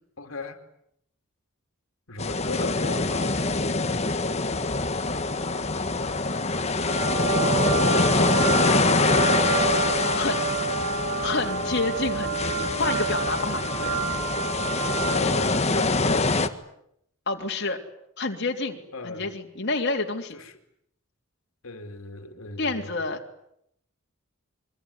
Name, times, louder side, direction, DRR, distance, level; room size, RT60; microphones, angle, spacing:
voice 1, 0.2-0.6 2.1-3.4 6.3-6.7 8.4-9.0 13.6-13.7 15.0-16.3 18.9-19.3 20.3-20.6 21.6-23.0, left 3 dB, 85° left, 6 dB, 2.8 m, -36 dB
sound 1, 2.2-16.5, left 3 dB, 30° left, 1.6 m, -25 dB
sound 2, 6.8-15.6, right 4 dB, 85° right, 7.7 m, -28 dB
voice 2, 11.2-14.0 17.3-17.8 18.2-20.4 22.6-23.2, left 3 dB, 55° left, 2 dB, 3.3 m, -29 dB
25.0 x 24.0 x 9.7 m, 0.75 s
head